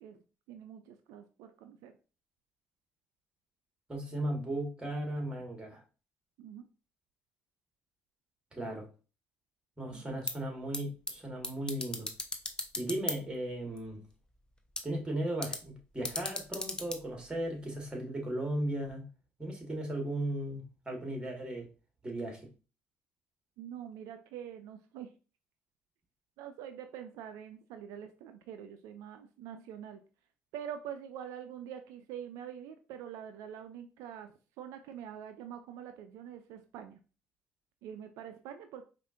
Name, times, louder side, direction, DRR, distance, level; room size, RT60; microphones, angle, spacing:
voice 1, 0.5-1.9 6.4-6.6 9.9-10.0 23.6-25.1 26.4-30.0 30.5-34.3 34.6-37.0 37.8-38.9, right 9 dB, 75° right, 0.4 m, -45 dB
voice 2, 3.9-5.8 8.5-8.9 9.8-12.1 12.8-14.0 14.8-19.0 19.4-21.7 22.0-22.5, right 1 dB, 15° right, 1.6 m, -36 dB
sound 1, 10.1-17.9, left 2 dB, 15° left, 0.8 m, -41 dB
4.9 x 2.5 x 2.5 m
hypercardioid pair, 65°, 6 cm